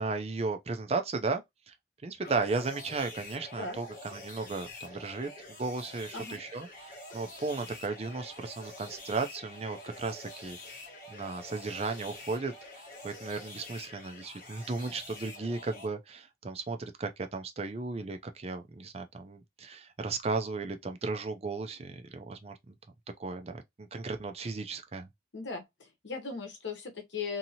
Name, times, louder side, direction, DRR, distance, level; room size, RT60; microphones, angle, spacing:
voice 1, 0.0-1.7 2.0-5.3 5.6-10.6 11.1-12.5 13.0-22.8 23.2-25.1, right 3 dB, 35° right, 0.4 m, -35 dB
sound 1, 2.2-15.8, left 2 dB, 50° left, 1.3 m, -47 dB
voice 2, 25.3-27.4, left 4 dB, 80° left, 0.9 m, -38 dB
2.8 x 2.7 x 2.7 m
head